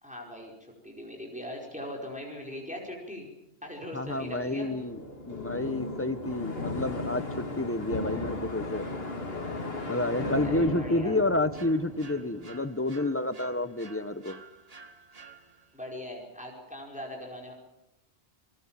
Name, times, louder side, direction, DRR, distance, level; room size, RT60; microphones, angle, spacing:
voice 1, 0.0-3.3 3.6-4.8 10.4-11.1 15.7-17.5, left 1 dB, 5° right, -1 dB, 4.9 m, -40 dB
voice 2, 3.9-5.0 5.3-8.8 9.9-14.4, left 2 dB, 15° left, 12 dB, 0.9 m, -29 dB
sound 1, 4.0-12.9, left 2 dB, 60° left, 2.6 m, -36 dB
sound 2, 11.5-15.9, right 4 dB, 35° right, 1.3 m, -51 dB
30.0 x 19.5 x 7.5 m, 0.92 s
omnidirectional pair, 1.1 m